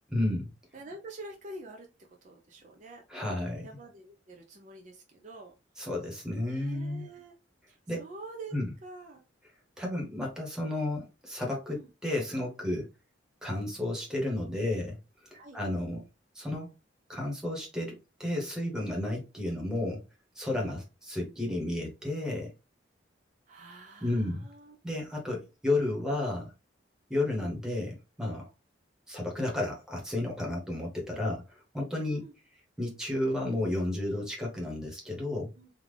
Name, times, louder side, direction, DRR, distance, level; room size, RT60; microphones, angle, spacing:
voice 1, 0.1-0.5 3.1-3.7 5.8-7.1 7.9-8.0 8.5-8.7 9.8-12.9 13.4-15.0 15.3-16.1 16.3-16.7 17.1-20.0 20.3-22.5 24.0-24.5 24.8-26.5 27.1-28.5 29.1-32.2 32.8-35.5, left 1 dB, 5° right, 1.1 m, -32 dB
voice 2, 0.7-3.0 3.6-5.5 6.4-7.3 7.7-8.6 8.8-9.2 11.7-11.9 15.3-15.6 23.5-24.8 32.0-32.4 35.6-35.7, right 2 dB, 40° right, 0.5 m, -47 dB
3.5 x 2.4 x 3.3 m
head